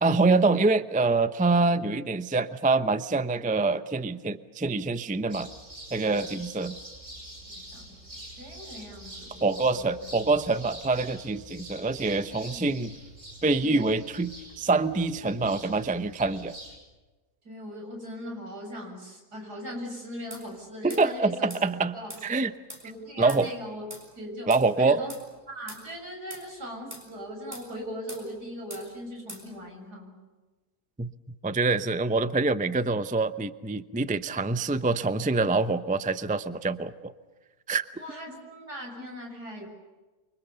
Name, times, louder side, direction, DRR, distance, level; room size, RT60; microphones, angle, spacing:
voice 1, 0.0-5.5 5.9-6.7 9.4-12.9 13.4-16.6 20.8-21.9 22.2-22.5 23.2-23.5 24.5-25.0 31.0-31.1 31.4-37.1 37.7-37.9, right 3 dB, 10° right, 12 dB, 0.5 m, -25 dB
sound 1, 5.3-16.8, right 1 dB, 50° right, 6.8 m, -45 dB
voice 2, 8.4-9.9 11.8-12.6 13.6-14.0 17.4-21.5 21.9-22.1 22.8-23.8 24.2-24.5 24.8-25.1 25.5-30.1 37.9-39.7, equal, 75° right, 2 dB, 8.0 m, -40 dB
sound 2, 20.3-20.5 20.9-21.1 21.5-21.6 22.1-22.3 22.7-22.9 23.3-23.4 23.9-24.1 24.5-24.7 25.1-25.2 25.7-25.8 26.3-26.5 26.9-27.1 27.5-27.7 28.1-28.3 28.7-28.9 29.3-29.5, right 1 dB, 25° right, 7.0 m, -42 dB
29.5 x 25.0 x 6.9 m, 1.2 s
omnidirectional pair, 1.7 m